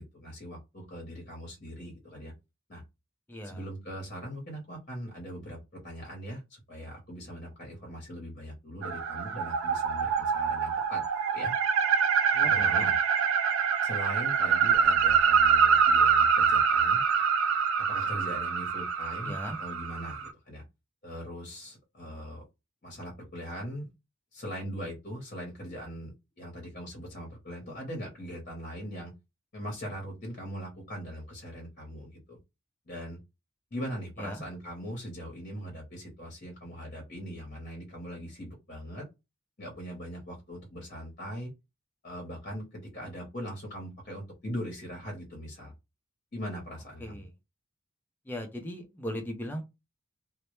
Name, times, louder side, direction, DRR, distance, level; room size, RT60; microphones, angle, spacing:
voice 1, 0.0-2.3 2.7-2.8 3.4-11.0 11.3-11.5 12.4-12.9 13.8-17.0 17.8-20.6 21.0-22.4 22.8-23.9 24.3-29.1 29.5-32.4 32.9-33.2 33.7-39.0 39.6-41.5 42.0-45.7 46.3-47.3, equal, 40° left, 0.7 m, -40 dB
voice 2, 3.3-3.6 12.3-12.9 19.2-19.6 34.2-34.4 47.0-47.3 48.3-49.6, equal, 10° left, 0.4 m, -38 dB
sound 1, 8.8-20.3, right 6 dB, 70° right, 0.3 m, -25 dB
2.1 x 2.0 x 2.9 m
head